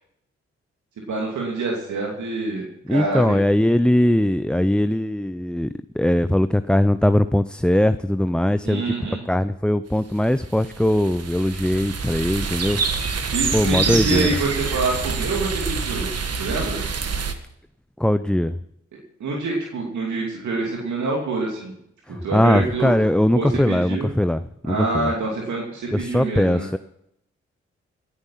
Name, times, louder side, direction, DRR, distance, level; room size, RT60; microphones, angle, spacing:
voice 1, 1.1-3.4 8.6-9.2 13.3-16.1 16.4-16.8 19.2-21.7 22.1-22.9 23.3-24.1 24.6-26.7, right 3 dB, 75° right, -2 dB, 2.7 m, -26 dB
voice 2, 2.9-8.9 9.3-12.8 13.5-14.3 18.0-18.6 22.1-25.1 25.9-26.8, left 1 dB, 5° left, 13 dB, 0.5 m, -20 dB
sound 1, 10.3-17.3, right 5 dB, 55° right, 1.5 m, -26 dB
17.5 x 9.7 x 5.7 m, 0.79 s
supercardioid pair, 40°, 29 cm